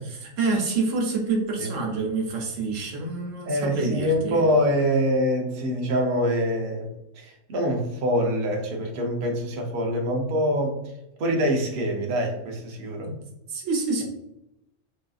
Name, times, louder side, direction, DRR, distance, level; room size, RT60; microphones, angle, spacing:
voice 1, 0.0-4.4 13.0-13.1 13.5-14.0, right 3 dB, 80° right, 0 dB, 1.1 m, -27 dB
voice 2, 3.5-10.8 11.2-13.1, equal, 55° right, 1 dB, 0.8 m, -25 dB
3.9 x 2.5 x 2.3 m, 0.85 s
omnidirectional pair, 1.3 m